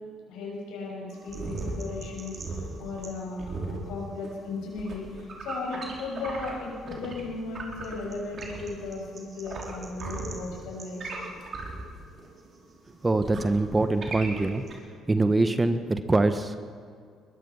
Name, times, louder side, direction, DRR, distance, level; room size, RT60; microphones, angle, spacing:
voice 1, 0.3-11.4, left 3 dB, 70° left, -1 dB, 6.9 m, -36 dB
sound 1, 1.1-7.2 7.5-14.8, right 3 dB, 45° right, 4.7 m, -37 dB
voice 2, 13.0-14.6 15.1-16.6, right 2 dB, 20° right, 10 dB, 1.4 m, -24 dB
22.0 x 21.0 x 5.7 m, 2.1 s
hypercardioid pair, 55°, 0 cm